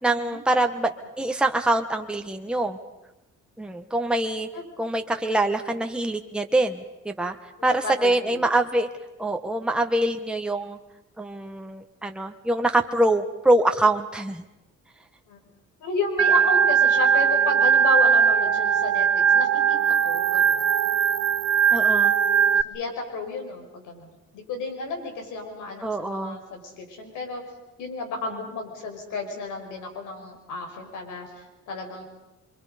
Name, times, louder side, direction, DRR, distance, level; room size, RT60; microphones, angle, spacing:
voice 1, 0.0-2.8 3.6-4.5 4.8-7.4 7.6-8.9 9.2-10.8 11.2-14.4 21.7-22.1 25.8-26.4, right 1 dB, 5° right, 5 dB, 1.3 m, -24 dB
voice 2, 7.7-8.4 15.3-15.4 15.8-19.1 19.3-20.7 22.6-27.4 27.8-32.0, left 3 dB, 85° left, 4 dB, 5.3 m, -32 dB
Organ, 16.2-22.6, right 7 dB, 55° right, 0.8 m, -20 dB
27.5 x 24.0 x 5.1 m, 1.0 s
cardioid pair, 90°, 30 cm